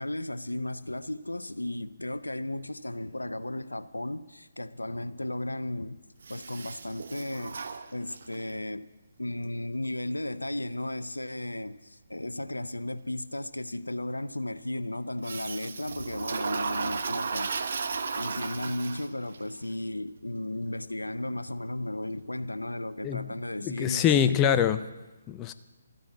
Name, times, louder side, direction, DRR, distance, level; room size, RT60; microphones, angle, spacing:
voice 1, 0.0-6.0 6.3-7.6 7.9-8.9 9.2-17.8 18.1-24.4, left 1 dB, 90° left, 0.6 m, -35 dB
Toilet flush, 6.2-8.5 15.2-19.4, right 5 dB, 60° right, 0.9 m, -34 dB
voice 2, 23.6-24.8 25.3-25.5, left 9 dB, 20° left, 0.5 m, -24 dB
13.0 x 10.5 x 8.5 m
figure-of-eight pair, 140°, 0 cm